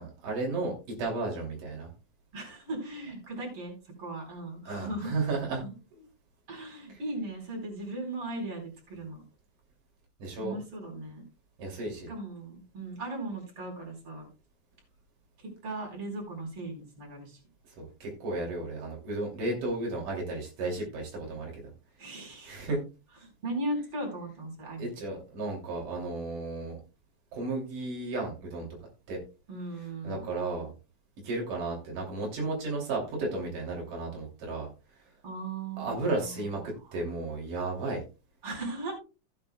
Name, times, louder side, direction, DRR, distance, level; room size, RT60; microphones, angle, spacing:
voice 1, 0.0-1.9 4.7-5.6 5.9-6.0 6.9-7.0 10.2-10.6 11.6-12.1 17.8-21.6 22.4-22.8 24.8-26.8 27.3-28.7 29.1-29.2 30.0-30.7 31.2-34.7 35.8-38.0, right 2 dB, 90° right, -1 dB, 4.3 m, -33 dB
voice 2, 2.3-5.1 5.6-5.7 6.5-9.2 10.4-11.2 12.1-14.3 15.6-17.4 22.0-22.6 23.4-24.9 29.5-30.3 35.2-36.4 38.4-39.0, right 2 dB, 45° right, 1 dB, 5.0 m, -37 dB
16.0 x 9.2 x 2.2 m, 0.30 s
omnidirectional pair, 3.5 m